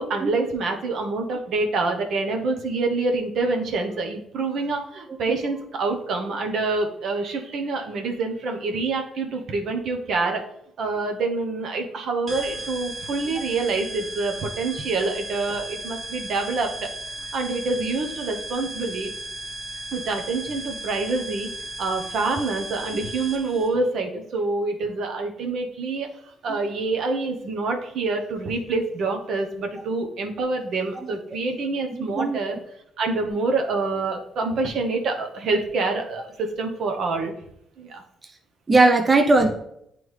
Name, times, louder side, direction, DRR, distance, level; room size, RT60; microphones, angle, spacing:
voice 1, 0.0-10.4 10.8-16.9 17.3-19.1 19.9-21.5 21.8-26.1 26.4-32.6 33.0-37.3 37.8-38.0, right 3 dB, 70° right, 3 dB, 0.9 m, -26 dB
sound 1, 12.3-23.7, right 1 dB, 50° right, 1.7 m, -35 dB
voice 2, 31.9-32.4 38.7-39.5, right 2 dB, 25° right, 4 dB, 0.5 m, -19 dB
9.2 x 3.4 x 3.2 m, 0.75 s
cardioid pair, 90°, 0 cm